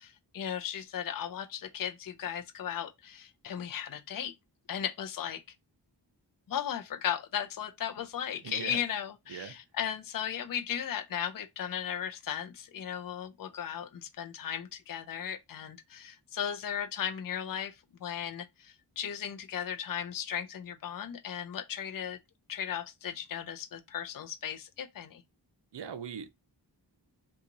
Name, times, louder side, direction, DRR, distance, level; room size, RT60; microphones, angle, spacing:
voice 1, 0.0-4.3 4.7-5.4 6.5-22.2 22.5-25.2, left 9 dB, 50° left, 0.5 m, -36 dB
voice 2, 8.4-8.8 9.3-9.5 25.7-26.3, right 7 dB, 65° right, 0.6 m, -40 dB
2.9 x 2.3 x 3.7 m
wide cardioid pair, 60°, 45 cm